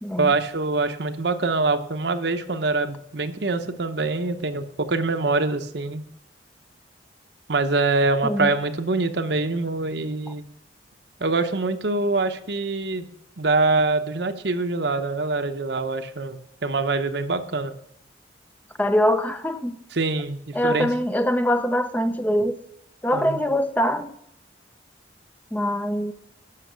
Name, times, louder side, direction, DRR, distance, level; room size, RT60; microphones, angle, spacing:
voice 1, 0.2-6.0 7.5-10.4 11.2-13.1 13.4-17.7 19.9-20.9 23.1-23.5, right 3 dB, 70° right, 0.9 m, -24 dB
voice 2, 18.8-19.8 20.5-22.6 23.0-24.1 25.5-26.1, equal, 10° left, 0.5 m, -23 dB
12.5 x 5.9 x 6.9 m
head